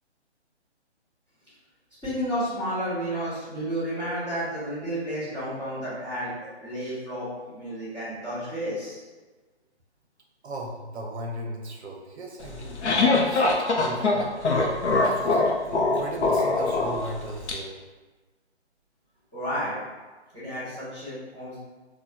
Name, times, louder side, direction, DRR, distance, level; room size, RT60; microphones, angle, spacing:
voice 1, 2.0-6.3 6.6-9.0 19.3-19.7 20.3-21.6, equal, 10° left, -15 dB, 0.7 m, -31 dB
voice 2, 10.4-14.3 15.0-17.7, right 1 dB, 70° right, 0 dB, 0.6 m, -37 dB
sound 1, 12.4-17.5, left 3 dB, 75° left, 0.6 m, -23 dB
3.0 x 2.2 x 2.2 m, 1.3 s
figure-of-eight pair, 145°, 34 cm